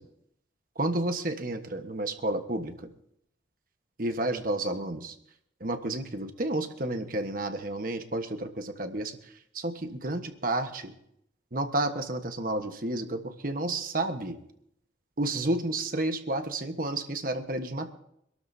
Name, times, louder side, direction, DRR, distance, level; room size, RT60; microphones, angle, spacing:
voice 1, 0.8-2.7 4.0-5.1 5.6-9.1 9.6-10.9 11.5-14.4 15.2-17.9, right 2 dB, 50° right, 6 dB, 1.3 m, -31 dB
26.0 x 12.5 x 2.8 m, 0.73 s
head